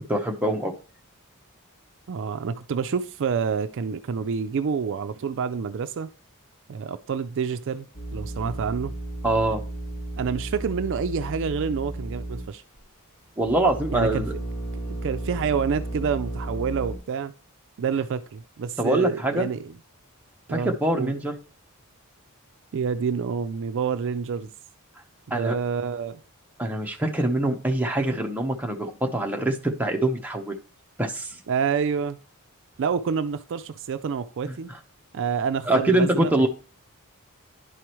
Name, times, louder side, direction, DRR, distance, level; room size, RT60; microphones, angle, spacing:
voice 1, 0.1-0.7 9.2-9.6 13.4-14.3 18.8-19.5 20.5-21.4 25.3-25.6 26.6-30.6 31.0-31.4 34.5-34.6 35.7-36.5, right 1 dB, 5° right, 0.8 m, -24 dB
voice 2, 2.1-6.1 6.7-8.9 10.2-12.6 13.9-14.3 14.8-17.3 17.8-19.7 20.5-21.1 22.7-24.5 25.3-26.2 31.5-32.2 32.8-34.7 35.1-36.5, right 6 dB, 55° right, 0.4 m, -28 dB
sound 1, 7.9-12.8 13.4-17.0, right 1 dB, 65° left, 1.7 m, -34 dB
10.5 x 4.8 x 3.0 m
head